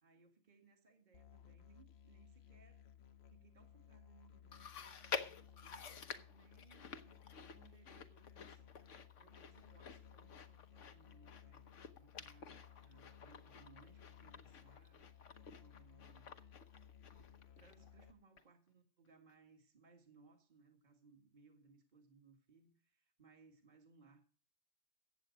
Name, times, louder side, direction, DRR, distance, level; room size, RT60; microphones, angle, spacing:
voice 1, 0.0-2.9 3.3-11.6 12.0-16.4 17.2-17.3 17.5-24.3, right 4 dB, 40° right, 5 dB, 1.8 m, -67 dB
Musical instrument, 1.1-18.1, left 9 dB, 60° left, 1.1 m, -60 dB
Chewing mastication, 4.5-18.1 18.4-18.5 19.3-19.4, left 6 dB, 80° left, 1.3 m, -50 dB
15.0 x 8.8 x 5.1 m, 0.41 s
omnidirectional pair, 1.2 m